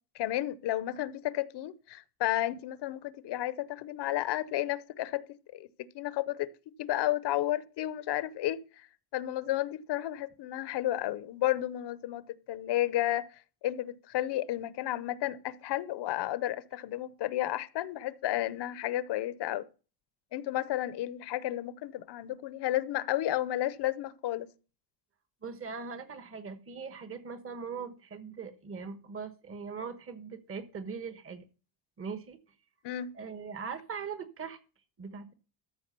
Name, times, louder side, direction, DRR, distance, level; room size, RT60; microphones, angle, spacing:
voice 1, 0.1-5.2 5.5-6.5 6.8-8.9 9.1-13.3 13.6-19.6 20.3-24.5 32.8-33.1, left 14 dB, 65° left, 0.8 m, -32 dB
voice 2, 25.4-31.4 32.0-32.4 33.1-34.6 35.0-35.3, right 5 dB, 30° right, 1.3 m, -40 dB
14.0 x 4.7 x 6.7 m
cardioid pair, 145°, 44 cm